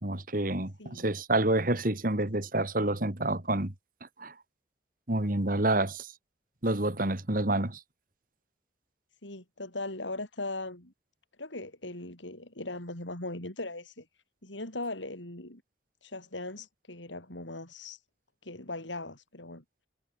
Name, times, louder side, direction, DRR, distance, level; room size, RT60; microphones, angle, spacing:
voice 1, 0.0-3.7 4.2-4.3 5.1-6.1 6.6-7.8, right 2 dB, 50° right, 2.4 m, -28 dB
voice 2, 9.2-10.9 11.4-14.0 14.4-15.6 16.0-18.0 18.4-19.6, left 2 dB, 90° left, 6.9 m, -39 dB
head